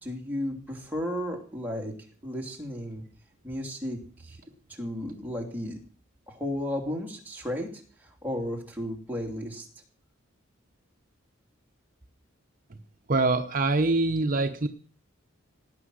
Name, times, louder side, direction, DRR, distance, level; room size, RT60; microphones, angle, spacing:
voice 1, 0.0-1.9 2.2-3.0 3.4-4.4 4.7-5.8 6.3-9.7, left 1 dB, 10° right, 0 dB, 3.0 m, -34 dB
voice 2, 13.1-14.7, right 2 dB, 45° right, 7 dB, 0.8 m, -24 dB
17.5 x 9.3 x 6.4 m, 0.44 s
head